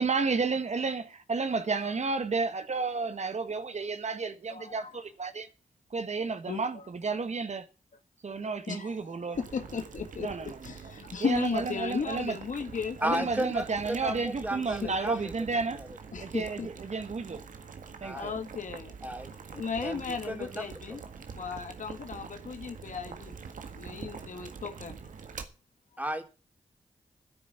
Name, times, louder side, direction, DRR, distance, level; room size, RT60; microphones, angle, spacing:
voice 1, 0.0-5.5 5.9-7.6 8.2-9.4 10.2-10.5 11.2-12.4 13.0-15.8 16.2-17.4 18.0-18.2, right 4 dB, 60° right, 1.4 m, -31 dB
voice 2, 4.5-4.9 6.5-6.9 8.3-13.2 14.7-14.9 16.1-16.7 18.1-18.9 19.5-21.0 21.4-23.4 23.7-25.0, left 5 dB, 75° left, 1.9 m, -36 dB
Boiling, 9.3-25.4, right 6 dB, 80° right, 1.7 m, -45 dB
voice 3, 13.0-16.0 18.0-18.3 19.0-20.7 26.0-26.2, right 1 dB, 10° right, 3.3 m, -35 dB
10.5 x 8.7 x 8.0 m
cardioid pair, 40°, 13 cm